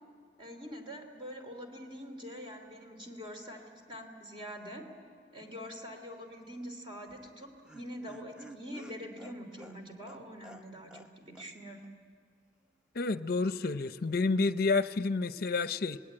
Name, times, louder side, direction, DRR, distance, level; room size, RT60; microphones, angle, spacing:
voice 1, 0.4-4.8 5.3-7.5 7.7-11.8, equal, 25° right, 4 dB, 3.0 m, -44 dB
Laughter, 7.1-11.1 11.4-11.5 11.8-11.9, equal, 5° right, 0.8 m, -52 dB
voice 2, 12.9-16.0, left 3 dB, 55° left, 12 dB, 0.7 m, -29 dB
26.0 x 20.0 x 8.8 m, 2.2 s
head